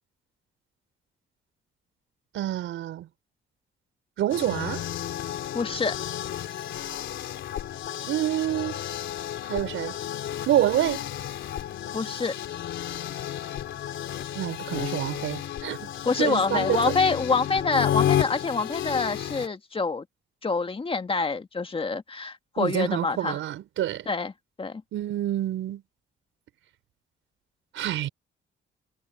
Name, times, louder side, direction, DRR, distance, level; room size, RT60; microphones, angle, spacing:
voice 1, 2.3-3.1 4.2-4.8 8.1-8.8 9.5-9.9 10.5-11.0 14.4-15.9 16.2-16.9 22.6-24.1 24.9-25.8 27.7-28.1, right 12 dB, 80° right, 5.4 m, -27 dB
sound 1, 4.3-19.5, left 11 dB, 75° left, 3.4 m, -32 dB
voice 2, 5.5-6.0 11.9-12.3 16.1-20.0 20.4-23.4 24.1-24.3 24.6-24.8, left 4 dB, 25° left, 1.9 m, -26 dB
cardioid pair, 90°, 20 cm